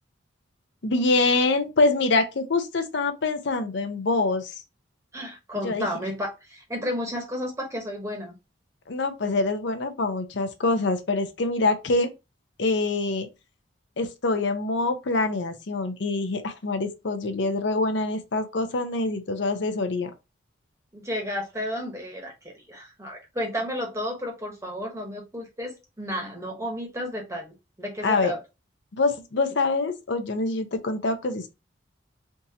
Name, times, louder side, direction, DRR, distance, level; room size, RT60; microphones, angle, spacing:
voice 1, 0.8-4.6 5.6-5.9 8.9-12.1 12.6-13.3 14.0-20.1 28.0-28.3 28.9-31.5, left 3 dB, 65° left, 0.6 m, -25 dB
voice 2, 5.1-8.3 20.9-28.4, equal, 15° right, 1.0 m, -32 dB
3.6 x 2.7 x 2.7 m
head